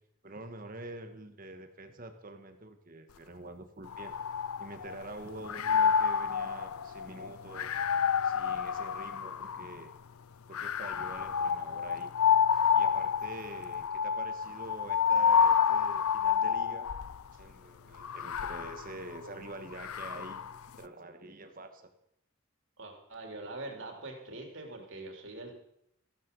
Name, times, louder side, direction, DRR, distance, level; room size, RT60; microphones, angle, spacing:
voice 1, 0.2-4.1 4.6-7.8 8.2-9.9 10.5-12.1 12.7-16.9 17.3-20.4 20.8-21.9, right 2 dB, 40° right, 7 dB, 1.5 m, -46 dB
sound 1, 3.9-5.1 5.5-9.8 10.5-17.2 18.0-20.6, left 7 dB, 85° left, 0.5 m, -29 dB
voice 2, 22.8-25.5, right 2 dB, 60° right, 2 dB, 3.5 m, -43 dB
15.0 x 12.5 x 5.4 m, 0.75 s
head